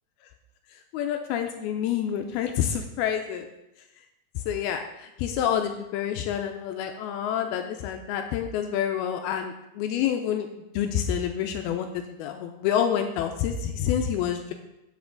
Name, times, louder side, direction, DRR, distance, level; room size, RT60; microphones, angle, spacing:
voice 1, 0.9-3.5 4.5-10.5 10.8-14.5, left 9 dB, 80° left, 5 dB, 2.4 m, -28 dB
9.4 x 7.6 x 3.8 m, 0.89 s
omnidirectional pair, 4.6 m